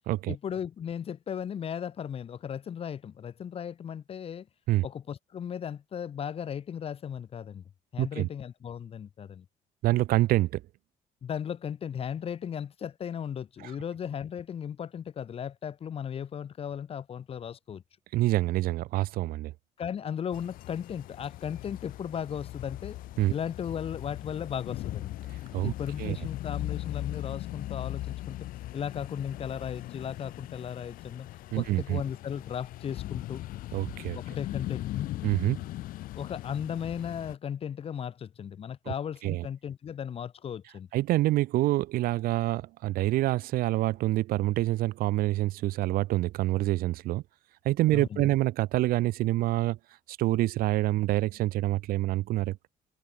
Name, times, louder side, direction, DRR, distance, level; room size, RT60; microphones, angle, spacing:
voice 1, 0.3-4.5 4.8-7.6 7.9-9.4 11.2-17.8 19.8-23.0 23.3-25.1 25.6-28.4 28.7-31.3 31.5-33.4 34.1-35.1 36.1-40.9 47.9-48.3, left 8 dB, 40° left, 3.1 m, -36 dB
voice 2, 8.0-8.3 9.8-10.6 13.6-13.7 18.1-19.5 23.2-23.3 25.5-25.7 26.0-26.2 31.5-32.0 33.7-34.2 35.2-35.6 38.9-39.0 39.2-39.5 40.9-47.2 47.6-49.8 50.1-52.7, right 16 dB, 85° right, 2.7 m, -26 dB
sound 1, 20.3-37.4, left 16 dB, 75° left, 0.9 m, -39 dB
cardioid pair, 145°, 15 cm